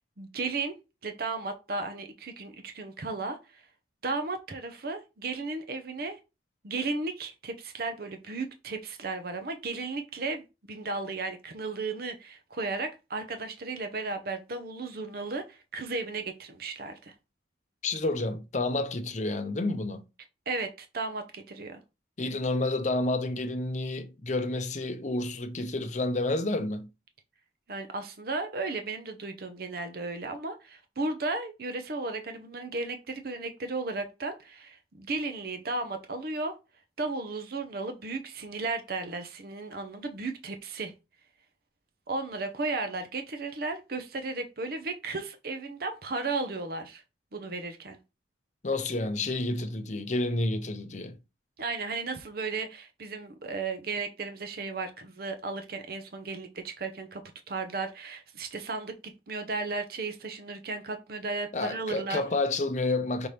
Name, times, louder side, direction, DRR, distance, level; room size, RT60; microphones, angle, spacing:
voice 1, 0.2-0.8 1.0-3.6 4.0-6.2 6.6-17.1 20.5-21.8 27.7-36.5 37.0-40.9 42.1-47.0 47.3-48.0 51.6-57.2 57.5-58.9 59.3-62.2, right 3 dB, 55° right, 0.6 m, -34 dB
voice 2, 17.8-20.0 22.2-26.9 48.6-51.2 61.5-63.3, left 2 dB, 40° left, 0.6 m, -30 dB
5.2 x 2.9 x 3.3 m
head